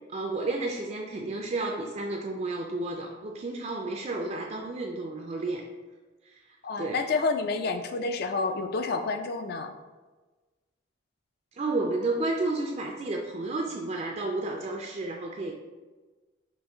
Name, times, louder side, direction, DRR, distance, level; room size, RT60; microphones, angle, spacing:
voice 1, 0.1-5.6 6.3-6.4 6.8-7.0 11.6-15.5, right 2 dB, 35° right, 1 dB, 0.3 m, -31 dB
voice 2, 6.6-9.7, left 3 dB, 50° left, 7 dB, 0.3 m, -29 dB
5.3 x 2.6 x 3.4 m, 1.3 s
head